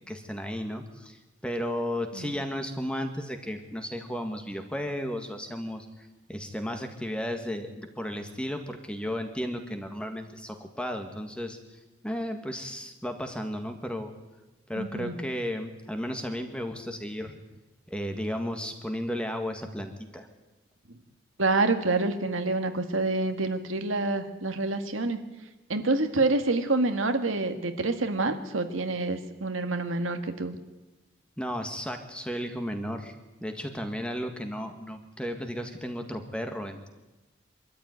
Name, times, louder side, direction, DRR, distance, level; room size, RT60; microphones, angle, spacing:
voice 1, 0.0-11.6 12.0-14.1 14.7-17.3 17.9-20.3 31.4-33.1 33.4-36.9, equal, 5° left, 5 dB, 1.8 m, -34 dB
voice 2, 14.8-15.2 21.4-25.2 25.7-30.6, right 3 dB, 80° right, 7 dB, 1.8 m, -27 dB
24.0 x 13.5 x 9.5 m, 1.1 s
head